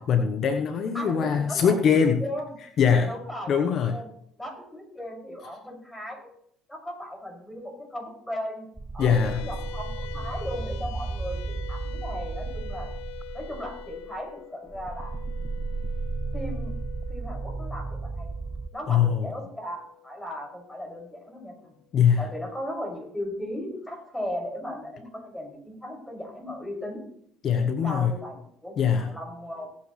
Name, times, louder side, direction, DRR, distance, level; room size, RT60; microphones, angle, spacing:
voice 1, 0.0-2.2 2.8-3.1 3.5-4.0 9.0-9.4 18.9-19.3 21.9-22.3 27.4-28.1 28.8-29.1, left 7 dB, 55° left, 6 dB, 1.1 m, -22 dB
voice 2, 0.9-1.8 2.2-2.5 3.0-3.5 3.9-4.1 4.4-6.3 6.7-8.7 8.9-11.4 11.7-12.9 13.3-15.1 16.3-16.7 17.1-18.3 18.7-21.8 22.2-27.0 27.8-29.7, equal, 5° left, 0 dB, 6.3 m, -37 dB
sound 1, 8.8-14.3 14.7-18.7, right 3 dB, 10° right, 0.7 m, -34 dB
sound 2, 9.0-21.6, left 19 dB, 80° left, 1.1 m, -45 dB
19.0 x 8.6 x 3.3 m, 0.67 s
hypercardioid pair, 60°, 0 cm